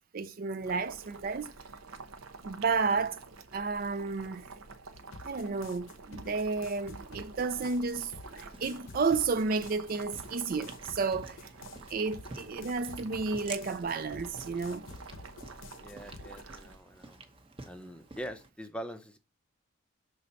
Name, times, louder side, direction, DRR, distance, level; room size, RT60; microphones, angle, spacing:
voice 1, 0.1-1.5 2.4-3.2 3.5-4.5 5.2-11.4 11.9-14.9, right 4 dB, 45° right, 0.4 m, -32 dB
Boiling, 0.6-16.8, right 4 dB, 90° right, 0.9 m, -49 dB
sound 1, 4.9-16.4, left 3 dB, 75° left, 0.8 m, -50 dB
sound 2, 7.0-18.5, right 3 dB, 25° right, 0.9 m, -51 dB
voice 2, 15.8-17.2 17.7-19.2, equal, 5° left, 0.6 m, -43 dB
6.5 x 4.1 x 5.6 m
head